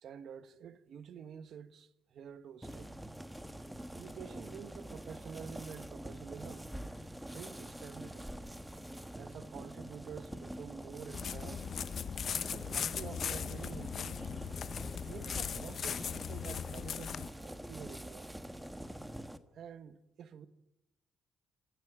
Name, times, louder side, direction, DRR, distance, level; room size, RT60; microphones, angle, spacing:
voice 1, 0.0-2.9 3.9-6.7 7.3-8.3 9.1-11.7 12.5-14.3 15.1-18.3 19.5-20.5, right 7 dB, 65° right, 1.4 m, -49 dB
sound 1, 2.6-19.4, right 1 dB, 5° right, 1.3 m, -46 dB
sound 2, 11.1-17.3, left 7 dB, 55° left, 0.8 m, -39 dB
26.0 x 15.0 x 9.1 m
cardioid pair, 90°, 0 cm